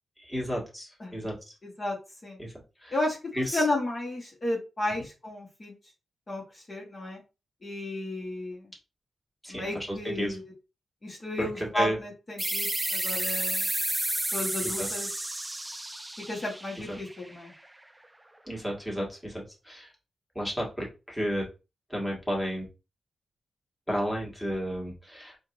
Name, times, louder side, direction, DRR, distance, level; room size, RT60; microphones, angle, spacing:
voice 1, 0.2-1.5 2.4-2.5 2.8-3.0 3.3-3.6 9.4-10.4 11.4-12.0 14.6-14.9 16.9-17.0 18.5-19.9 20.3-21.4 21.9-22.6 23.9-25.4, equal, ahead, -3 dB, 1.6 m, -32 dB
voice 2, 1.6-2.0 2.2-2.4 2.9-5.7 6.3-7.2 7.6-8.7 9.5-10.5 11.0-13.7 14.3-15.1 16.3-17.5, left 1 dB, 35° left, -2 dB, 1.3 m, -33 dB
sound 1, 12.4-17.7, right 1 dB, 15° right, 0.4 m, -31 dB
4.5 x 2.5 x 2.9 m, 0.29 s
cardioid pair, 95°, 0 cm